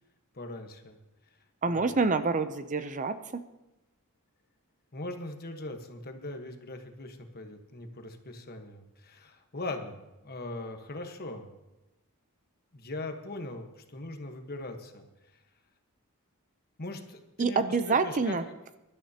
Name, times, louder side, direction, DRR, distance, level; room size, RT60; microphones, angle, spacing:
voice 1, 0.3-1.0 1.7-2.1 4.9-11.5 12.7-15.1 15.3-15.4 16.8-18.4, left 2 dB, 45° left, 5 dB, 1.3 m, -40 dB
voice 2, 1.6-3.4 17.4-18.4, right 4 dB, 35° right, 11 dB, 0.6 m, -27 dB
23.0 x 12.5 x 2.9 m, 0.99 s
head